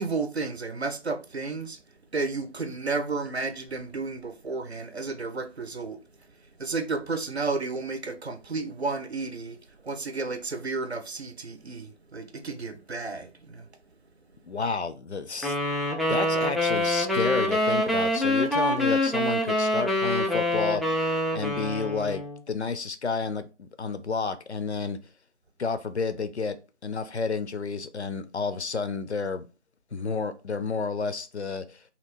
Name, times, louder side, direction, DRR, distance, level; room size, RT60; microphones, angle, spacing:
voice 1, 0.0-1.8 2.1-6.0 6.6-9.6 9.8-13.7, right 3 dB, 60° right, 0.6 m, -32 dB
voice 2, 14.4-15.6 16.1-25.0 25.6-26.6 26.8-29.5 29.9-31.8, left 4 dB, 65° left, 0.5 m, -31 dB
sound 1, 15.4-22.4, left 1 dB, ahead, 0.4 m, -25 dB
2.9 x 2.8 x 4.1 m
figure-of-eight pair, 175°, 37 cm